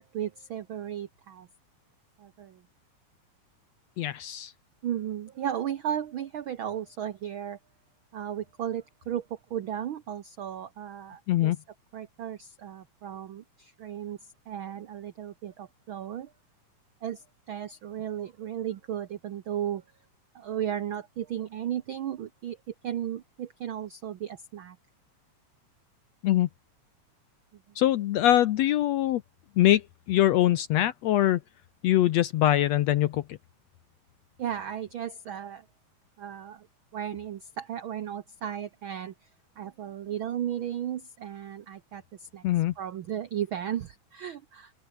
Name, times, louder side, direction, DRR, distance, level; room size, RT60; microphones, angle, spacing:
voice 1, 0.0-1.5 2.2-2.6 4.8-7.6 8.1-11.5 11.9-14.2 14.5-16.3 17.0-19.8 20.3-22.6 22.8-24.8 34.4-35.6 36.2-36.7 36.9-39.1 39.6-42.4 42.8-44.7, right 10 dB, 85° right, 1.1 m, -35 dB
voice 2, 4.0-4.5 11.3-11.6 26.2-26.5 27.8-29.2 29.6-29.8 30.1-31.4 31.8-33.2 42.4-42.7, left 13 dB, 70° left, 1.7 m, -23 dB
omnidirectional pair, 3.6 m